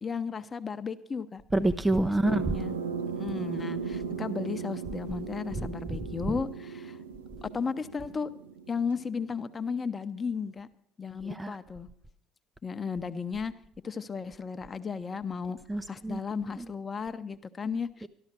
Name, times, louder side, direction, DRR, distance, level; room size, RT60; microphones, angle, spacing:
voice 1, 0.0-1.4 2.5-2.8 3.1-7.0 7.4-8.3 8.7-10.7 11.0-11.9 12.6-15.6 15.9-18.1, left 5 dB, 30° left, 11 dB, 1.0 m, -34 dB
voice 2, 1.5-2.6 5.6-5.7 6.3-6.4 11.2-11.6 15.7-16.2 16.6-16.7 18.0-18.1, right 2 dB, 10° right, 9 dB, 0.7 m, -27 dB
sound 1, 2.2-9.4, right 6 dB, 85° right, 0.7 m, -37 dB
13.0 x 12.5 x 6.0 m, 0.67 s
hypercardioid pair, 60°, 0 cm